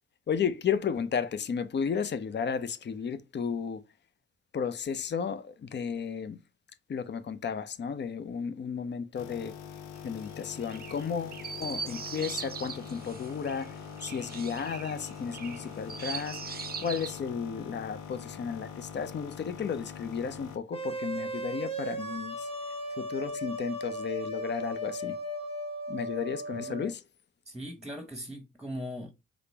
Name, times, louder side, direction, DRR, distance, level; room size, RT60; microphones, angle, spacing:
voice 1, 0.3-3.8 4.5-6.4 6.9-9.5 10.0-22.5 23.0-25.1 25.9-27.0, left 6 dB, 35° left, 0.6 m, -33 dB
sound 1, 9.1-20.6, left 7 dB, 80° left, 0.6 m, -44 dB
Chirp tweet, 10.0-17.2, right 6 dB, 30° right, 0.7 m, -41 dB
sound 2, 20.7-26.9, right 1 dB, 20° left, 1.1 m, -36 dB
voice 2, 26.5-26.9 27.5-29.1, equal, 5° right, 1.1 m, -39 dB
5.0 x 2.0 x 4.4 m
hypercardioid pair, 50°, 31 cm